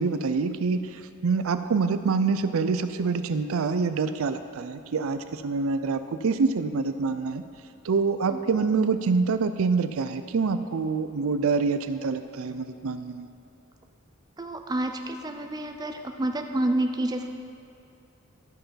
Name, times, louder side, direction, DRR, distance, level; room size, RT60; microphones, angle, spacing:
voice 1, 0.0-7.4 7.8-13.3, right 4 dB, 85° right, 10 dB, 0.5 m, -26 dB
voice 2, 14.4-17.3, right 1 dB, 20° right, 5 dB, 0.5 m, -29 dB
12.5 x 5.6 x 5.7 m, 2.6 s
head